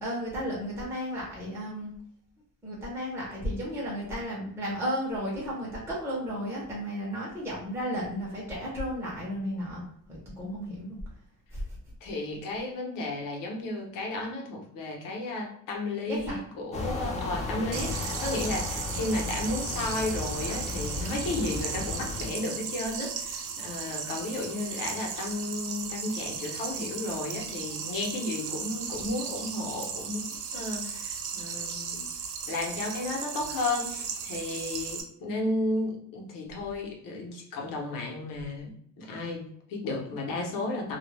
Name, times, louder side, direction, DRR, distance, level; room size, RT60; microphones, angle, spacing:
voice 1, 0.0-1.9 2.6-9.8 10.1-11.0 11.5-11.8 16.1-16.5 16.8-16.9, equal, 10° right, -6 dB, 0.7 m, -33 dB
voice 2, 12.0-32.0 32.5-41.0, left 2 dB, 80° left, 0 dB, 0.9 m, -33 dB
sound 1, 16.7-22.3, left 3 dB, 20° left, 0.4 m, -34 dB
sound 2, 17.7-35.0, right 6 dB, 70° right, 0.5 m, -36 dB
2.3 x 2.1 x 3.1 m, 0.67 s
cardioid pair, 165°, 33 cm